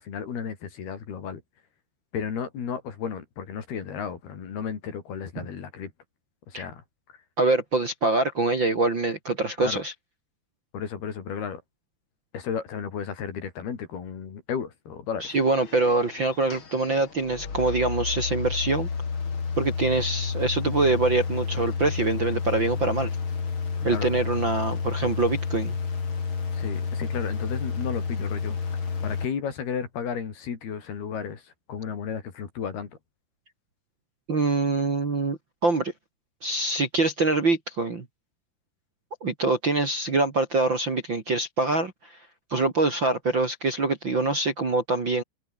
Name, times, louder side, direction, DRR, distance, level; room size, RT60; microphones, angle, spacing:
voice 1, 0.0-1.4 2.1-5.9 6.5-6.8 9.6-9.8 10.7-11.6 12.3-15.3 23.8-24.1 26.5-28.6 29.0-32.9, left 7 dB, 65° left, 5.5 m, -33 dB
voice 2, 7.4-9.9 15.2-18.9 19.6-23.1 23.8-25.8 34.3-35.9 36.4-38.0 39.2-42.1 42.5-45.2, right 3 dB, 35° right, 2.5 m, -24 dB
sound 1, 15.2-29.2, left 5 dB, 30° left, 3.4 m, -30 dB
omnidirectional pair, 4.9 m